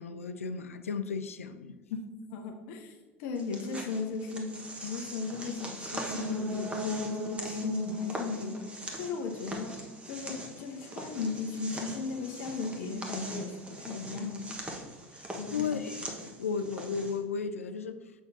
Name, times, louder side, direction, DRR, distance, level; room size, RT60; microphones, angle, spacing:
voice 1, 0.0-1.8 15.1-18.0, left 5 dB, 85° left, 0.4 m, -35 dB
voice 2, 2.3-8.6 9.0-9.8 10.1-14.5 15.4-15.8, left 4 dB, 60° left, 0.8 m, -36 dB
sound 1, 3.4-17.2, right 1 dB, 15° right, 1.2 m, -42 dB
sound 2, 5.8-9.5 9.9-10.0, left 1 dB, 35° right, 1.1 m, -37 dB
6.8 x 6.1 x 2.7 m
figure-of-eight pair, 70°, 7 cm